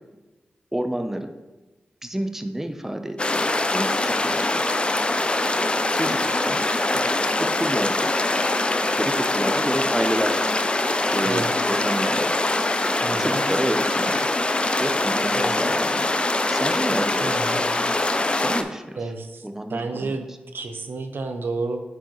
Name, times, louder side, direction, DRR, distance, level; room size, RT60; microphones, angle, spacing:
voice 1, 0.7-1.3 2.0-3.2 3.7-4.5 5.9-6.6 6.9-8.1 8.9-10.4 11.1-12.3 12.9-14.3 14.8-16.1 16.5-17.6 18.3-19.0 19.4-20.2, right 1 dB, 10° right, 6 dB, 0.7 m, -29 dB
sound 1, 3.2-18.6, left 2 dB, 30° left, 0.5 m, -23 dB
voice 2, 11.2-11.7 13.0-13.4 15.3-15.5 17.2-17.7 19.0-19.4 19.7-21.8, right 3 dB, 75° right, 6 dB, 0.7 m, -31 dB
8.9 x 4.8 x 3.1 m, 1.1 s
cardioid pair, 50°, 4 cm